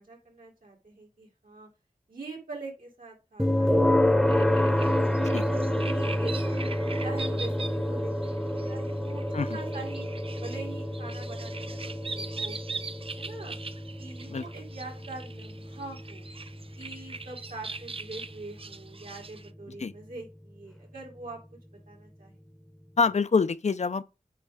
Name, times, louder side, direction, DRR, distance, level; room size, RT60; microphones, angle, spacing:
voice 1, 0.0-1.7 2.1-6.6 7.0-10.1 10.4-13.6 14.0-16.2 16.7-21.4 21.9-22.4, right 3 dB, 75° right, 3.1 m, -44 dB
sound 1, 3.4-18.3, left 1 dB, ahead, 0.9 m, -28 dB
sound 2, 4.3-19.5, right 4 dB, 40° right, 0.5 m, -42 dB
voice 2, 23.0-24.0, left 5 dB, 55° left, 0.5 m, -25 dB
8.8 x 5.1 x 3.6 m
wide cardioid pair, 65°, 14 cm